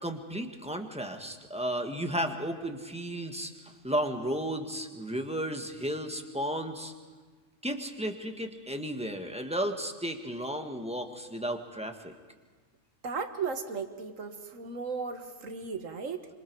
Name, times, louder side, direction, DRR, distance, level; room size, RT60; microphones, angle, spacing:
voice 1, 0.0-6.9 7.6-12.1, equal, 5° right, 4 dB, 1.5 m, -34 dB
voice 2, 13.0-16.3, right 5 dB, 80° right, 7 dB, 1.8 m, -36 dB
26.5 x 25.5 x 4.7 m, 1.4 s
omnidirectional pair, 1.3 m